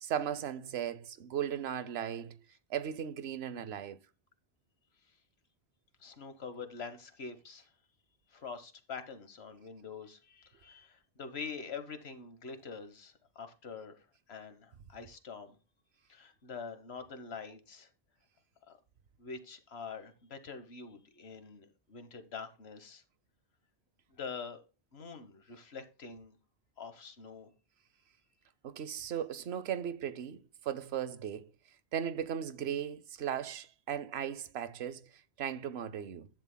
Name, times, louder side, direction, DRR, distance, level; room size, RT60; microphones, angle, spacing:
voice 1, 0.0-2.4 2.7-4.0 28.6-31.5 31.9-35.1 35.4-36.3, right 9 dB, 75° right, 1.0 m, -37 dB
voice 2, 6.0-7.7 8.3-15.6 16.1-17.9 18.7-18.8 19.2-23.0 24.1-24.6 24.9-26.4 26.8-27.5, left 5 dB, 75° left, 1.5 m, -45 dB
13.0 x 10.5 x 2.2 m
omnidirectional pair, 1.1 m